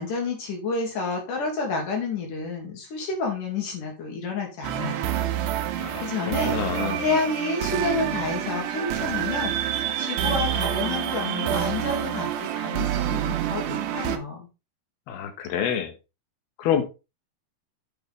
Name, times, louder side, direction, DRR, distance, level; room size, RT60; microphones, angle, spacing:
voice 1, 0.0-5.1 6.0-14.5, left 4 dB, 55° left, 1 dB, 3.5 m, -30 dB
sound 1, 4.6-14.2, right 11 dB, 80° right, 1.9 m, -27 dB
voice 2, 5.8-6.1 6.5-7.0 15.1-15.9 16.6-16.8, left 8 dB, 70° left, 6 dB, 3.3 m, -27 dB
8.0 x 7.7 x 3.3 m, 0.28 s
omnidirectional pair, 4.7 m